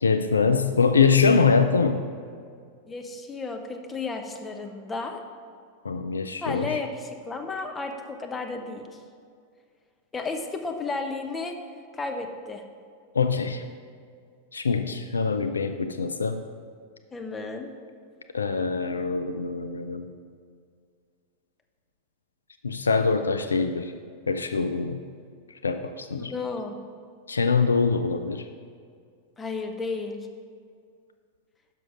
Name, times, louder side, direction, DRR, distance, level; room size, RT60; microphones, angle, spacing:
voice 1, 0.0-2.0 5.8-6.8 13.2-13.6 14.5-16.4 18.3-20.1 22.6-23.9 24.3-25.0 25.6-26.3 27.3-28.4, left 5 dB, 75° left, 8 dB, 0.3 m, -23 dB
voice 2, 2.9-5.2 6.4-9.0 10.1-11.6 11.9-12.6 17.1-17.7 26.2-26.8 29.4-30.3, left 3 dB, 15° left, 4 dB, 0.7 m, -33 dB
6.1 x 6.1 x 5.1 m, 2.2 s
figure-of-eight pair, 90°, 0 cm